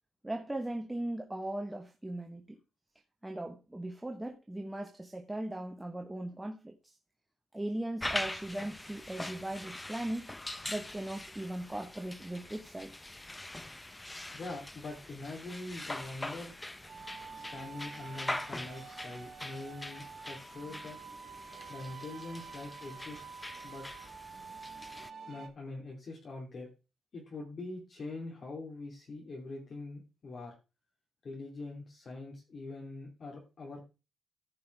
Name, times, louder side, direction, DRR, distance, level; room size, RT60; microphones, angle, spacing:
voice 1, 0.2-2.6 3.2-6.9 7.5-10.3 10.7-13.1, right 1 dB, 10° right, 1.0 m, -38 dB
sound 1, 8.0-25.1, left 1 dB, 10° left, 0.6 m, -43 dB
voice 2, 14.3-16.5 17.3-21.0 21.7-23.2 23.6-23.9 25.0-26.7 27.1-30.5 31.2-33.8, left 2 dB, 45° left, 2.8 m, -43 dB
sound 2, 16.9-25.5, right 5 dB, 50° right, 1.7 m, -48 dB
15.0 x 5.4 x 3.3 m
cardioid pair, 110°, 0 cm